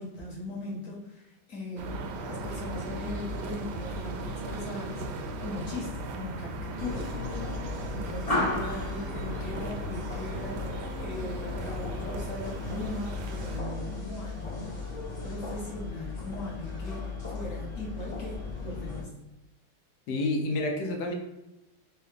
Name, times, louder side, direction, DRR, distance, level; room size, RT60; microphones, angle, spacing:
voice 1, 0.0-7.1 7.9-10.7 11.0-14.7 15.2-19.1, left 2 dB, 50° left, -4 dB, 1.5 m, -39 dB
sound 1, 1.8-13.6, right 2 dB, 75° right, 1.2 m, -38 dB
sound 2, 6.8-19.0, left 3 dB, 30° left, 0.7 m, -35 dB
voice 2, 20.1-21.1, left 2 dB, 70° left, 3 dB, 1.1 m, -29 dB
4.7 x 2.3 x 3.3 m, 0.95 s
omnidirectional pair, 1.9 m